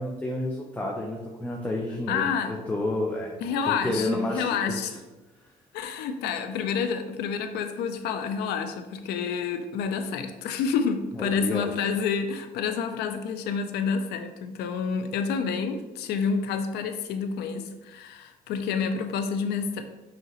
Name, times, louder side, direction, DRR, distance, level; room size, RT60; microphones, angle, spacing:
voice 1, 0.0-3.3 3.6-5.0 11.1-11.7, left 1 dB, 10° left, -1 dB, 0.5 m, -30 dB
voice 2, 2.1-2.6 3.4-4.9 5.7-19.8, left 6 dB, 75° left, 7 dB, 0.4 m, -29 dB
5.5 x 2.9 x 2.9 m, 1.1 s
cardioid pair, 110°, 17 cm